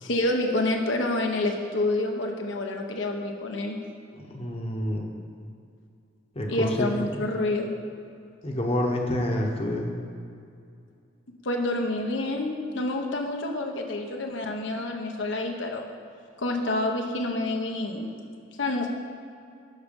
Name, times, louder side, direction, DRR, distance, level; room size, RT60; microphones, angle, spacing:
voice 1, 0.0-3.8 6.5-7.7 11.4-15.8 16.4-18.1 18.6-18.9, left 2 dB, 70° left, 2 dB, 0.9 m, -28 dB
voice 2, 4.1-5.1 6.3-6.9 7.2-7.3 8.4-9.9, left 1 dB, 30° left, 1 dB, 1.0 m, -28 dB
12.0 x 6.0 x 5.3 m, 2.4 s
head